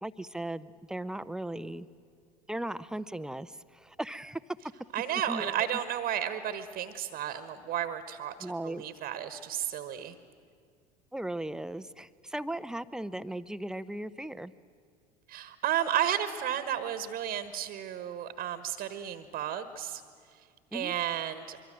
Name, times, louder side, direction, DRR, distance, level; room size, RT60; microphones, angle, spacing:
voice 1, 0.0-1.9 2.5-4.4 5.3-5.8 8.4-8.8 11.1-14.5 20.7-20.9, right 1 dB, 5° right, 15 dB, 0.7 m, -37 dB
voice 2, 4.9-10.2 15.3-20.0 20.7-21.6, right 10 dB, 45° right, 11 dB, 1.3 m, -33 dB
24.5 x 23.0 x 7.6 m, 2.1 s
figure-of-eight pair, 65°, 20 cm